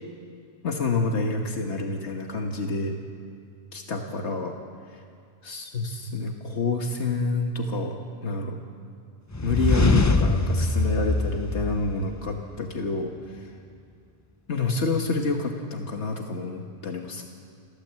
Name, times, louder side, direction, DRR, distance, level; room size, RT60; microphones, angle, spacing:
voice 1, 0.6-3.0 3.7-4.6 4.9-5.0 5.4-8.0 8.2-8.6 9.4-13.5 14.5-17.2, left 3 dB, 80° left, 3 dB, 1.7 m, -28 dB
sound 1, 9.3-12.3, left 2 dB, 20° left, 0.5 m, -23 dB
28.5 x 13.0 x 7.6 m, 2.4 s
omnidirectional pair, 1.1 m